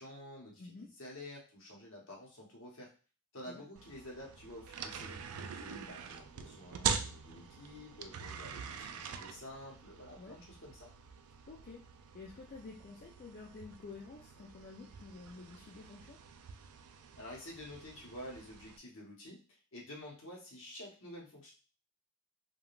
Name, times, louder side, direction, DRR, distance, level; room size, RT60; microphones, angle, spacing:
voice 1, 0.0-2.9 3.3-5.2 5.5-10.9 17.2-21.5, left 1 dB, 60° left, -2 dB, 1.0 m, -50 dB
voice 2, 0.6-0.9 3.5-3.7 10.2-10.4 11.5-11.9 12.1-16.2, left 3 dB, 40° left, -1 dB, 0.4 m, -50 dB
sound 1, 3.8-18.8, right 7 dB, 75° right, 0.3 m, -44 dB
3.5 x 2.3 x 2.4 m, 0.36 s
head